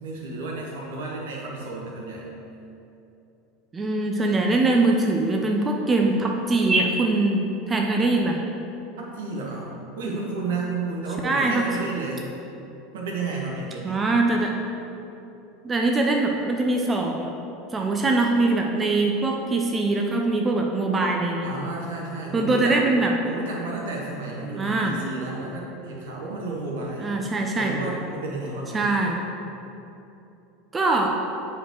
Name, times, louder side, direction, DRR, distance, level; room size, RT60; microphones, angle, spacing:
voice 1, 0.0-2.2 9.0-12.3 12.9-14.0 21.4-22.8 23.3-27.1 27.5-28.9, right 3 dB, 70° right, -2 dB, 1.2 m, -32 dB
voice 2, 3.7-8.4 11.2-11.7 13.8-14.6 15.6-17.3 17.7-21.5 22.3-23.1 24.6-24.9 27.0-27.7 28.7-29.2 30.7-31.1, right 2 dB, 25° right, 1 dB, 0.5 m, -22 dB
7.8 x 4.6 x 3.1 m, 2.9 s
hypercardioid pair, 80°, 0 cm